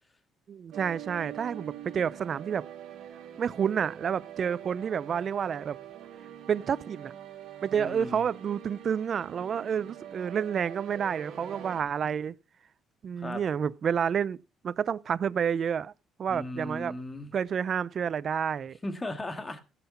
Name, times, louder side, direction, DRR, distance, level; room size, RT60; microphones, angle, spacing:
voice 1, 0.5-2.6 3.4-5.8 6.5-7.1 7.6-12.3 13.0-14.4 14.6-15.9 16.2-16.9 17.3-18.8, right 7 dB, 50° right, 0.5 m, -29 dB
sound 1, 0.7-11.8, right 11 dB, 80° right, 2.5 m, -44 dB
voice 2, 7.7-8.2 13.2-13.4 16.3-17.3 18.8-19.6, left 1 dB, 20° left, 2.0 m, -37 dB
16.0 x 5.7 x 5.6 m
cardioid pair, 100°, 0 cm